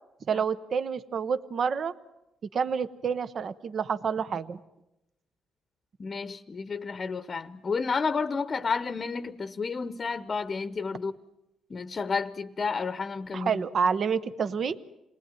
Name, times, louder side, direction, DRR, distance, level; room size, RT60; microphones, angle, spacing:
voice 1, 0.3-1.9 2.5-4.6 13.3-14.8, right 6 dB, 55° right, 13 dB, 0.8 m, -28 dB
voice 2, 6.0-11.1 11.7-13.6, left 5 dB, 35° left, 12 dB, 0.8 m, -31 dB
27.5 x 19.5 x 9.1 m, 0.91 s
cardioid pair, 90°, 0 cm